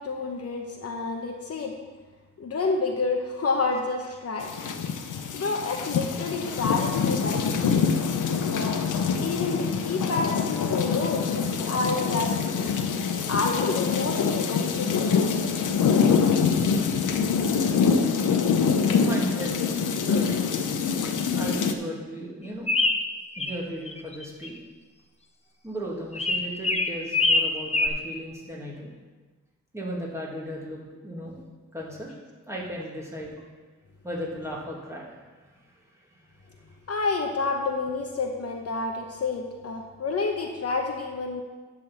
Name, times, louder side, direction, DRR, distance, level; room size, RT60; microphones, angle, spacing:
voice 1, 0.0-1.8 2.4-4.5 5.3-8.0 8.3-8.7 9.2-12.7 13.3-15.8 16.9-17.0 36.9-41.4, left 3 dB, 50° left, 2 dB, 1.0 m, -29 dB
sound 1, 4.4-21.7, left 6 dB, 80° left, 0.8 m, -25 dB
voice 2, 18.9-20.3 21.3-22.7 23.4-24.6 25.6-28.9 29.7-31.4 31.7-32.1 32.5-33.4 34.0-35.1 35.6-35.7 36.1-36.5, equal, 10° right, -5 dB, 2.3 m, -36 dB
sound 2, 22.7-23.6 23.9-24.5 26.1-27.9, left 2 dB, 20° left, 0.7 m, -24 dB
11.0 x 4.1 x 7.1 m, 1.3 s
wide cardioid pair, 105°, 30 cm